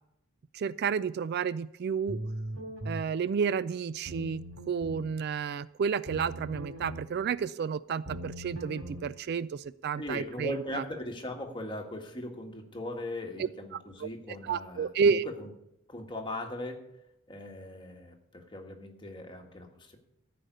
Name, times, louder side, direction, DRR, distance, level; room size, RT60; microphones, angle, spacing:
voice 1, 0.5-2.2 2.9-10.8 14.0-14.1 14.4-15.2, right 6 dB, 50° right, 17 dB, 0.3 m, -31 dB
sound 1, 2.1-3.0 4.0-5.1 6.1-7.0 8.0-9.0, right 1 dB, 75° right, 3.5 m, -39 dB
voice 2, 10.0-15.5 15.9-16.8 17.3-20.0, left 1 dB, 25° left, 3 dB, 1.6 m, -39 dB
14.0 x 5.1 x 9.2 m, 0.81 s
head